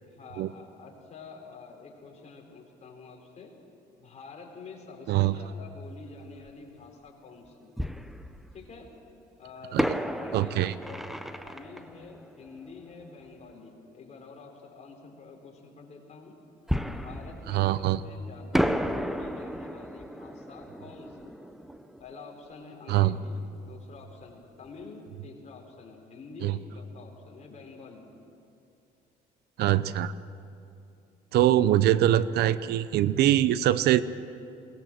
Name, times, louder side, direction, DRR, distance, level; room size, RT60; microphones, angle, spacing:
voice 1, 0.0-3.5 4.0-7.7 8.5-8.9 9.4-11.1 11.4-16.4 16.9-21.5 22.0-28.1, left 4 dB, 40° left, 1 dB, 4.3 m, -47 dB
Fireworks, 6.5-6.6 7.8-8.9 9.8-13.2 16.7-18.1 18.5-23.1 23.3-23.4 24.0-24.2, equal, ahead, 0.8 m, -33 dB
voice 2, 10.3-10.7 17.5-18.0 22.9-23.2 26.4-26.6 29.6-30.1 31.3-34.0, right 13 dB, 75° right, 16 dB, 0.7 m, -23 dB
22.0 x 19.0 x 7.7 m, 2.6 s
cardioid pair, 110°, 17 cm